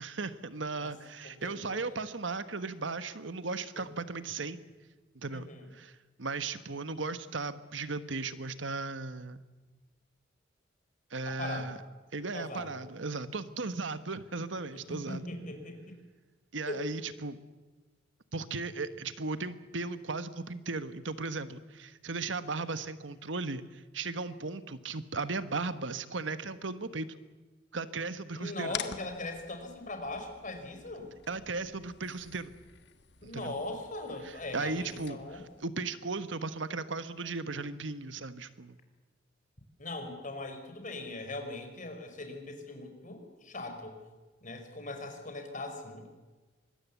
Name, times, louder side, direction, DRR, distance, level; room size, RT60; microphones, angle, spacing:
voice 1, 0.0-4.6 5.1-9.4 11.1-11.8 12.1-15.2 16.5-17.4 18.3-27.1 27.7-28.7 31.3-32.5 33.2-33.5 34.5-38.8, right 3 dB, 75° right, 12 dB, 1.3 m, -36 dB
voice 2, 1.2-2.0 3.8-3.9 5.3-5.7 11.2-11.8 12.3-12.8 14.7-16.0 16.7-16.8 28.4-31.1 33.2-35.4 39.8-44.0 44.4-46.1, left 2 dB, 45° left, 5 dB, 4.6 m, -40 dB
sound 1, 28.7-35.7, left 9 dB, 65° left, 1.6 m, -47 dB
25.0 x 21.0 x 8.3 m, 1.2 s
head